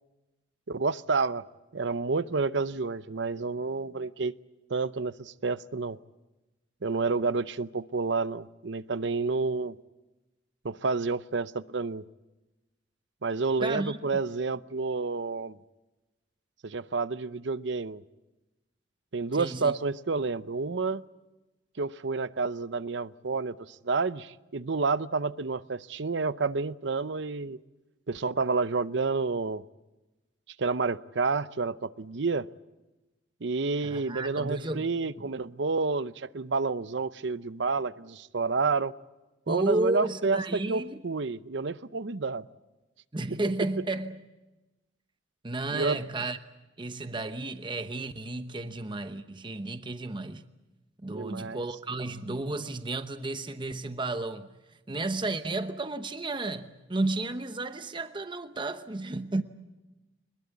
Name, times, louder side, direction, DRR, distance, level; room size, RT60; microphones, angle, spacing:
voice 1, 0.7-1.4 1.7-4.3 4.7-6.0 6.8-9.8 10.6-12.0 13.2-15.6 16.6-18.0 19.1-21.0 21.8-27.6 28.1-29.6 30.6-32.5 33.4-38.9 39.5-42.5 45.7-46.0 51.1-51.6, right 4 dB, 70° right, 0.7 m, -29 dB
voice 2, 13.6-14.2 19.3-19.7 33.8-35.3 39.5-41.0 43.1-44.2 45.4-46.4 46.8-50.4 51.0-54.5 54.9-59.4, right 2 dB, 25° right, 0.9 m, -32 dB
24.0 x 21.5 x 8.3 m
head